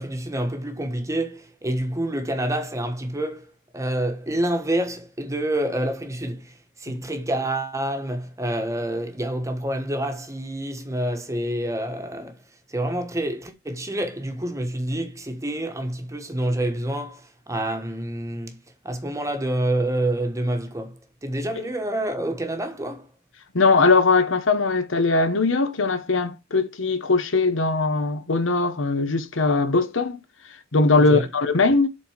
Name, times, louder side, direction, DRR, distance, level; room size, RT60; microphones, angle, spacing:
voice 1, 0.0-12.4 12.7-18.6 18.8-23.1 30.9-31.3, right 1 dB, 15° right, 1.3 m, -28 dB
voice 2, 23.5-30.2 30.7-31.9, left 3 dB, 70° left, 1.0 m, -20 dB
7.5 x 4.2 x 5.0 m
head